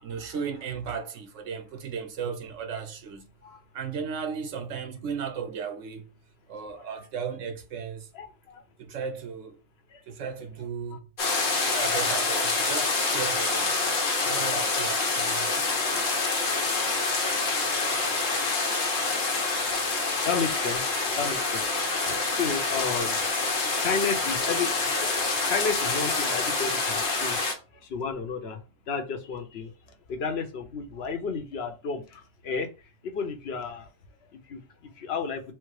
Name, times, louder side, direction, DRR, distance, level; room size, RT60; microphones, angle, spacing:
voice 1, 0.0-3.3 3.7-6.1 6.5-8.1 8.8-9.6 10.1-11.1 11.7-13.8 14.2-16.1, right 6 dB, 75° right, 1.1 m, -35 dB
voice 2, 8.1-8.6 9.9-10.0 19.6-19.7 20.2-23.3 23.8-27.4 27.8-28.6 28.9-29.7 30.1-32.7 33.0-33.9 34.3-34.6 35.0-35.4, left 5 dB, 60° left, 1.0 m, -32 dB
sound 1, 11.2-27.5, left 3 dB, 85° left, 1.4 m, -26 dB
4.5 x 2.0 x 4.6 m
omnidirectional pair, 1.3 m